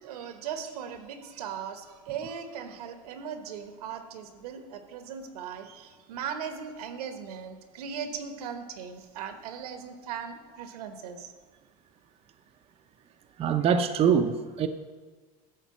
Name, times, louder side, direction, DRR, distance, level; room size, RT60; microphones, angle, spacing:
voice 1, 0.0-11.3, right 7 dB, 85° right, 7 dB, 1.1 m, -38 dB
voice 2, 13.4-14.7, right 7 dB, 30° right, 7 dB, 0.6 m, -24 dB
11.0 x 4.0 x 7.2 m, 1.4 s
supercardioid pair, 120°, 19 cm